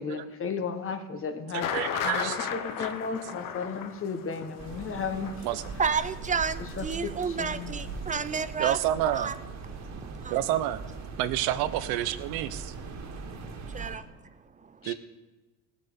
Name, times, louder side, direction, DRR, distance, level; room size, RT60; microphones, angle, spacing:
voice 1, 0.0-1.7 2.0-5.3 6.8-7.7 14.8-14.9, left 5 dB, 35° left, 7 dB, 1.5 m, -34 dB
voice 2, 1.5-2.5 2.8-2.9 5.4-5.6 8.6-9.3 10.3-10.8 11.2-12.7 14.8-14.9, right 13 dB, 80° right, 13 dB, 0.9 m, -29 dB
sound 1, 1.6-7.2 7.5-7.6 8.0-8.1, left 9 dB, 60° left, 1.1 m, -35 dB
sound 2, 4.6-14.0, right 4 dB, 50° right, 2.2 m, -40 dB
voice 3, 5.8-8.8 9.1-9.3 10.0-10.4 13.7-14.0, right 6 dB, 20° right, 13 dB, 0.6 m, -30 dB
17.5 x 8.2 x 5.3 m, 1.2 s
cardioid pair, 110°, 36 cm